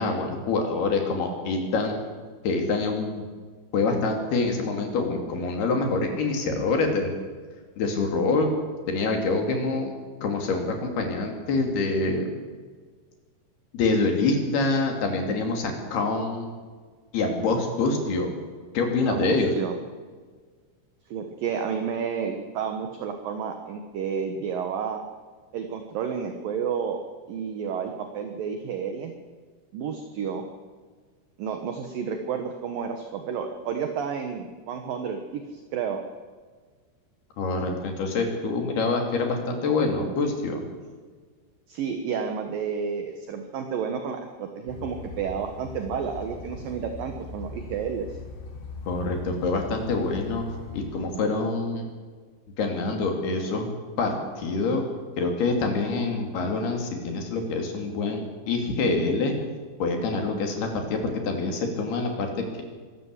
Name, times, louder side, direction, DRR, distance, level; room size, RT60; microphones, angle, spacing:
voice 1, 0.0-2.0 2.4-3.3 3.7-7.1 7.8-8.5 8.9-9.9 10.2-12.3 13.7-16.5 17.1-18.3 18.7-19.5 37.4-40.6 48.9-50.4 50.7-51.9 52.6-53.7 54.0-54.8 55.2-58.2 58.5-59.3 59.8-62.6, left 3 dB, 60° left, 3 dB, 4.6 m, -26 dB
voice 2, 19.1-19.8 21.1-25.0 25.5-27.0 27.3-29.1 29.7-30.4 31.4-36.0 41.7-48.2, right 6 dB, 60° right, 5 dB, 2.6 m, -31 dB
sound 1, 44.7-51.1, left 3 dB, 90° left, 4.9 m, -40 dB
23.5 x 13.5 x 8.3 m, 1.5 s
omnidirectional pair, 5.2 m